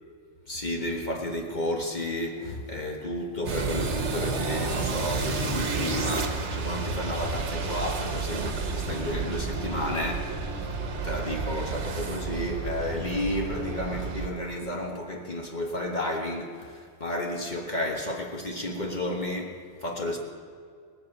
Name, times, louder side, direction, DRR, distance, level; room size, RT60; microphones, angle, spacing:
voice 1, 0.5-10.3 11.0-20.2, left 1 dB, 40° left, 1 dB, 1.4 m, -32 dB
sound 1, 3.4-14.3, right 4 dB, 75° right, 1.4 m, -31 dB
18.0 x 7.9 x 7.4 m, 2.1 s
omnidirectional pair, 1.2 m